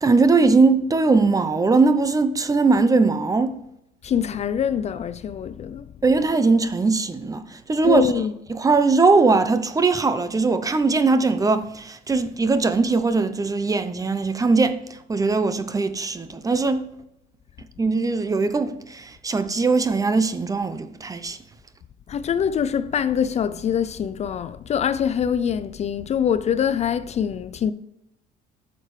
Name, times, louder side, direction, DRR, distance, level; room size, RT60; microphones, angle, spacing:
voice 1, 0.0-3.6 6.0-8.1 8.5-14.8 15.1-16.9 17.8-21.4, right 3 dB, 20° right, 0.8 m, -20 dB
voice 2, 4.0-5.9 7.8-8.3 22.1-27.7, left 8 dB, 40° left, 0.4 m, -24 dB
9.9 x 6.6 x 3.2 m
cardioid pair, 110°, 17 cm